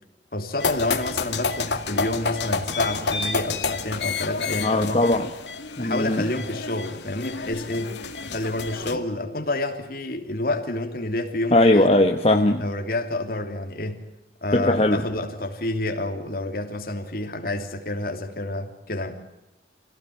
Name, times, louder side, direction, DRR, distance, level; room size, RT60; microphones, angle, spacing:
voice 1, 0.3-5.2 5.8-11.8 12.6-14.0 14.4-19.1, left 2 dB, 55° left, 5 dB, 3.1 m, -29 dB
sound 1, 0.6-8.9, left 4 dB, 75° left, 2.1 m, -29 dB
voice 2, 4.6-5.3 5.8-6.2 11.5-12.6 14.5-15.0, left 1 dB, 35° left, 3 dB, 1.2 m, -19 dB
26.5 x 17.0 x 9.4 m, 0.92 s
head